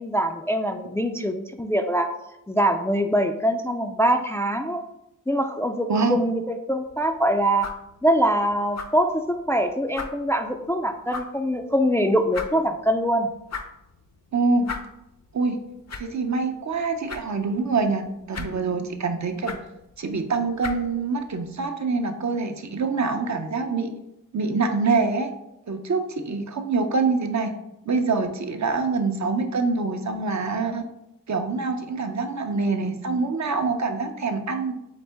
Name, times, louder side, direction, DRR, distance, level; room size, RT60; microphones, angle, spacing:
voice 1, 0.0-2.1 2.5-4.8 5.3-7.7 8.0-13.3, equal, 10° left, 5 dB, 0.3 m, -23 dB
sound 1, 6.8-21.7, left 4 dB, 50° left, 0.6 m, -41 dB
voice 2, 14.3-14.7 15.3-15.6 16.0-19.5 20.0-23.9 24.3-25.3 25.7-27.5 27.9-30.8 31.3-34.7, right 4 dB, 55° right, 5 dB, 0.6 m, -25 dB
4.1 x 3.6 x 3.4 m, 0.87 s
cardioid pair, 50°, 34 cm